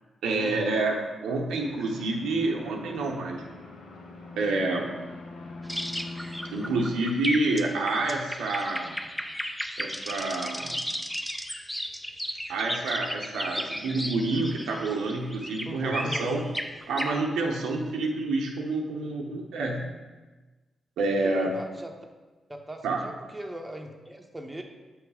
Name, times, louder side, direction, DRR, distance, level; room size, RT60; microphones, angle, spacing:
voice 1, 0.2-3.4 4.4-5.0 6.5-9.0 9.8-10.8 12.5-16.5 16.9-19.9 21.0-21.5 22.8-23.0, right 2 dB, 85° right, 0 dB, 0.7 m, -28 dB
sound 1, 1.6-6.9, left 2 dB, 85° left, 0.8 m, -42 dB
sound 2, 5.6-17.2, equal, 5° left, 0.4 m, -35 dB
voice 2, 15.6-16.3 21.2-21.9 22.5-24.6, right 1 dB, 15° right, 2 dB, 0.9 m, -39 dB
7.1 x 3.1 x 4.8 m, 1.3 s
supercardioid pair, 55°, 0 cm